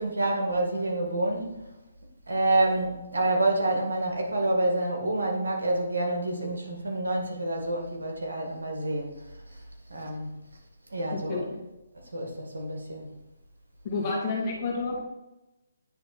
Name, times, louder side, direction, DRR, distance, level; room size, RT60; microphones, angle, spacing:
voice 1, 0.0-1.5 2.3-9.1 9.9-10.3 10.9-11.5 12.1-13.1, right 2 dB, 80° right, 1 dB, 1.8 m, -28 dB
voice 2, 11.1-11.4 13.8-15.0, left 3 dB, 35° left, -2 dB, 1.9 m, -30 dB
9.8 x 3.5 x 4.2 m, 1.0 s
figure-of-eight pair, 145°, 0 cm